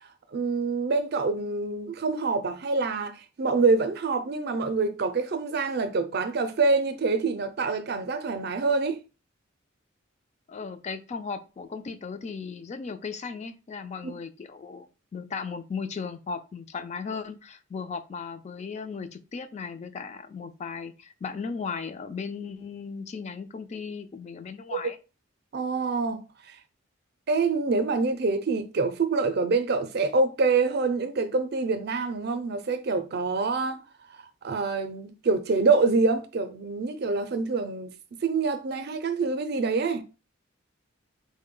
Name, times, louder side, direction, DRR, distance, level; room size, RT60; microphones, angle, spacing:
voice 1, 0.3-9.0 14.0-14.1 25.5-26.2 27.3-33.8 34.4-37.9 38.2-40.0, right 4 dB, 55° right, 0.5 m, -26 dB
voice 2, 10.5-25.0, left 5 dB, 35° left, 0.3 m, -36 dB
3.8 x 2.1 x 3.7 m
head